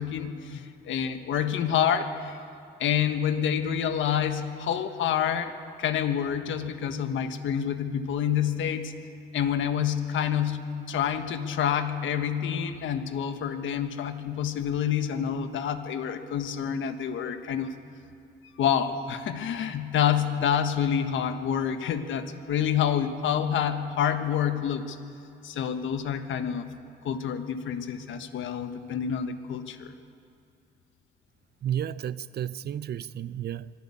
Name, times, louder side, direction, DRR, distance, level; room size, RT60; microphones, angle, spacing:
voice 1, 0.0-2.4 2.8-5.5 5.8-8.9 9.3-17.7 18.6-25.0 25.4-26.7 27.0-29.9, left 8 dB, 75° left, 1.5 m, -28 dB
voice 2, 31.6-33.7, right 10 dB, 55° right, 0.6 m, -32 dB
24.0 x 12.5 x 8.6 m
cardioid pair, 90°, 20 cm